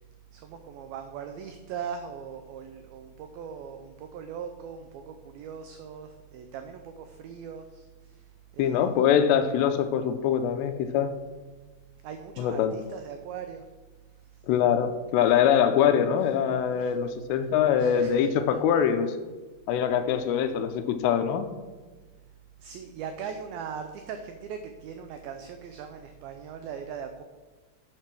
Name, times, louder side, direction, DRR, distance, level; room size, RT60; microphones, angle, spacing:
voice 1, 0.3-8.3 8.5-9.0 12.0-13.7 14.3-14.4 16.7-16.9 17.8-18.3 22.6-27.2, right 7 dB, 85° right, 7 dB, 2.1 m, -40 dB
voice 2, 8.6-11.1 12.4-12.7 14.5-19.2 19.7-21.5, left 8 dB, 85° left, 9 dB, 2.7 m, -23 dB
9.3 x 6.6 x 5.9 m, 1.3 s
omnidirectional pair, 5.0 m